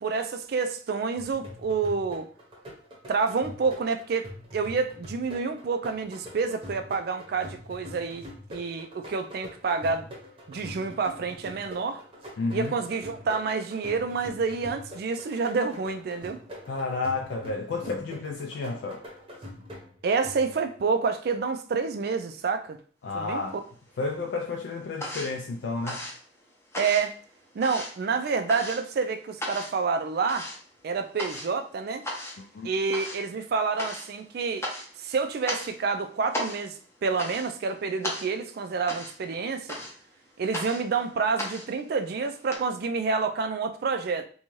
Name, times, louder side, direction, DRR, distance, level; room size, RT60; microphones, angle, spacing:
voice 1, 0.0-2.3 3.1-4.3 4.5-10.1 10.5-12.0 12.5-16.4 20.0-22.8 23.1-23.4 26.8-27.2 27.5-30.5 30.8-32.0 32.6-34.7 35.0-39.8 40.4-44.2, right 4 dB, 60° right, 0.3 m, -28 dB
sound 1, 1.2-20.8, left 1 dB, 30° right, 0.8 m, -44 dB
voice 2, 12.4-12.8 16.7-19.1 23.0-23.6 24.0-26.1 32.4-32.7, left 3 dB, 75° left, 0.3 m, -31 dB
sound 2, 23.2-24.0 24.3-42.6, left 1 dB, 15° left, 0.6 m, -37 dB
2.6 x 2.3 x 3.0 m
head